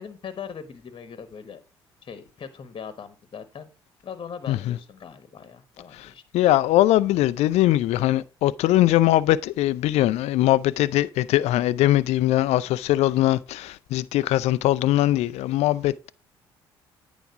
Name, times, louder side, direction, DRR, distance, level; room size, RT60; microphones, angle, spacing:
voice 1, 0.0-1.6 2.0-3.7 4.0-6.2, left 7 dB, 40° left, 1.2 m, -40 dB
voice 2, 6.3-16.1, left 14 dB, 60° left, 0.4 m, -21 dB
9.2 x 5.0 x 4.8 m
hypercardioid pair, 50°, 12 cm